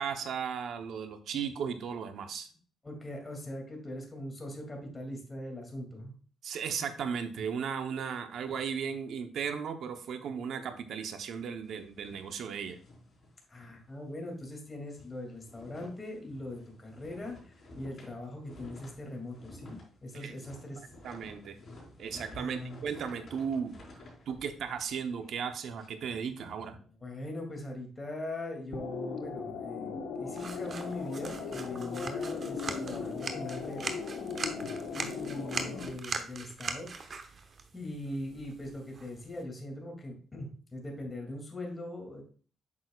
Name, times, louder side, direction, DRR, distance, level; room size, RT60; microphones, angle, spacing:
voice 1, 0.0-2.5 6.4-12.8 20.1-20.3 20.8-21.6 22.0-23.8 24.3-26.8, right 7 dB, 70° right, 8 dB, 0.9 m, -36 dB
voice 2, 2.8-6.1 13.5-20.9 22.3-22.8 27.0-33.8 34.9-37.2 37.7-42.2, left 1 dB, 20° left, 1 dB, 2.6 m, -41 dB
sound 1, 11.6-13.9 14.2-14.4 14.7-25.9, left 1 dB, 45° left, 3.9 m, -53 dB
sound 2, 28.7-35.9, left 5 dB, 75° left, 1.2 m, -38 dB
sound 3, 30.3-39.4, right 4 dB, 45° right, 0.9 m, -41 dB
8.5 x 6.3 x 2.4 m, 0.42 s
cardioid pair, 90°, 0 cm